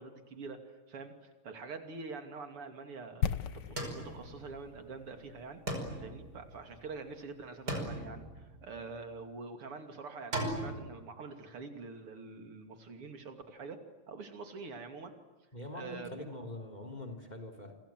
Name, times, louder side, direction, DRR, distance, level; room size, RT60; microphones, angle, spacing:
voice 1, 0.0-5.6 6.0-15.1 15.7-16.4, right 4 dB, 90° right, 6 dB, 3.7 m, -46 dB
sound 1, 3.2-7.2 7.4-7.5, left 8 dB, 60° left, 1.6 m, -39 dB
sound 2, 3.8-4.9 5.7-7.1 7.7-9.0 10.3-10.9, right 1 dB, 45° right, 5.8 m, -38 dB
voice 2, 15.5-17.8, left 1 dB, 20° left, 7 dB, 3.7 m, -44 dB
29.0 x 25.5 x 7.7 m, 1.2 s
omnidirectional pair, 2.4 m